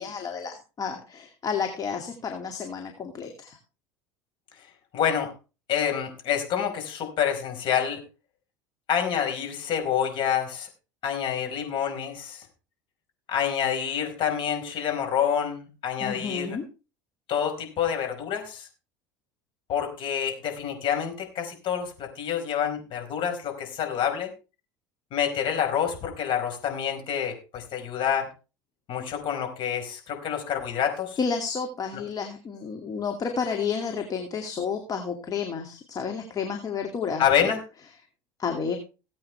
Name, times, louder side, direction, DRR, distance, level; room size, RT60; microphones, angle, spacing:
voice 1, 0.0-3.6 16.0-16.6 31.2-37.5 38.4-38.8, left 6 dB, 35° left, 4 dB, 2.4 m, -31 dB
voice 2, 4.9-5.3 5.7-8.0 8.9-10.7 11.0-12.5 13.3-16.6 17.3-18.7 19.7-24.3 25.1-28.3 28.9-31.2 31.9-32.0 37.2-37.6, left 8 dB, 50° left, 3 dB, 4.8 m, -27 dB
18.5 x 8.6 x 3.4 m, 0.32 s
hypercardioid pair, 75°, 11 cm